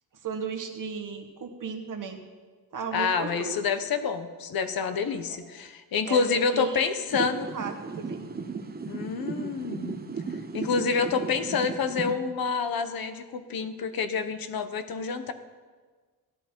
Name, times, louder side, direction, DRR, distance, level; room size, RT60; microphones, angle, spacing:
voice 1, 0.2-2.2 2.7-3.5 5.3-5.4 6.0-6.2 6.5-6.9 7.1-8.2, right 6 dB, 55° right, 4 dB, 1.5 m, -35 dB
voice 2, 2.9-7.5 8.9-10.0 10.5-15.3, left 5 dB, 65° left, 10 dB, 1.0 m, -28 dB
sound 1, 7.1-12.1, right 4 dB, 25° right, 0.8 m, -35 dB
15.0 x 11.0 x 4.5 m, 1.4 s
wide cardioid pair, 130°, 38 cm